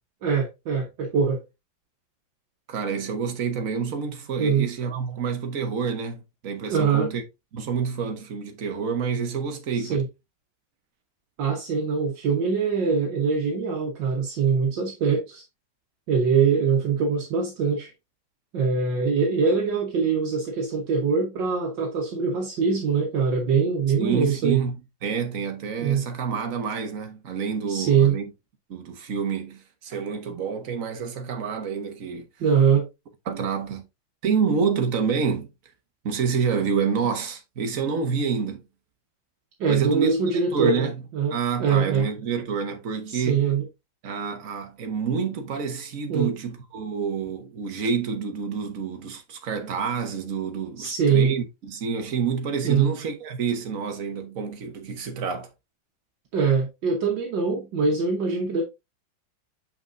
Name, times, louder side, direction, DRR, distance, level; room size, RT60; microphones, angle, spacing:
voice 1, 0.2-1.4 4.4-4.7 6.7-7.1 9.7-10.1 11.4-15.4 16.1-17.9 18.5-24.6 25.8-26.1 27.7-28.2 32.4-32.9 39.6-42.1 43.1-43.7 46.1-46.3 50.8-51.3 52.6-52.9 56.3-58.6, right 5 dB, 75° right, 1.8 m, -23 dB
voice 2, 2.7-7.2 7.5-10.0 24.0-24.7 25.0-28.2 28.7-32.3 33.3-33.8 34.2-35.5 36.0-38.6 39.7-40.1 40.5-40.9 41.3-43.5 44.0-55.5, right 6 dB, 50° right, 1.5 m, -28 dB
6.7 x 5.9 x 2.6 m
omnidirectional pair, 2.0 m